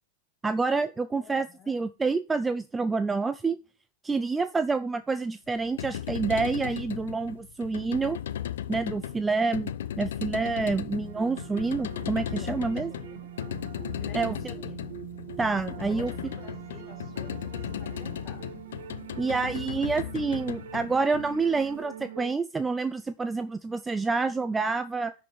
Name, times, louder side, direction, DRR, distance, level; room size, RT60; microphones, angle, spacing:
voice 1, 0.4-3.6 4.0-8.2 8.7-12.9 14.1-14.5 15.4-16.1 19.2-25.1, right 4 dB, 10° right, 0.4 m, -28 dB
voice 2, 1.2-1.8 12.4-13.3 14.0-15.0 15.9-18.5, left 6 dB, 25° left, 1.8 m, -51 dB
sound 1, 5.6-21.7, left 10 dB, 85° left, 0.7 m, -36 dB
sound 2, 11.0-22.3, right 10 dB, 70° right, 1.5 m, -43 dB
10.5 x 5.2 x 4.3 m
supercardioid pair, 160°, 0 cm